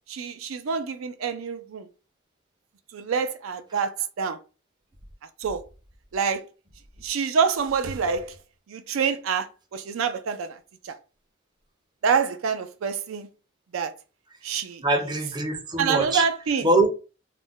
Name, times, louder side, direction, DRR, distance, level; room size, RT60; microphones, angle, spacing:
voice 1, 0.1-1.9 2.9-4.4 5.4-5.6 6.1-6.4 7.0-8.4 8.7-10.6 10.8-10.9 12.0-13.3 13.7-13.9 14.4-14.8 15.8-16.7, right 6 dB, 75° right, 0.4 m, -26 dB
voice 2, 14.8-16.2 16.6-16.9, right 2 dB, 20° right, 0.5 m, -23 dB
2.4 x 2.1 x 3.5 m
head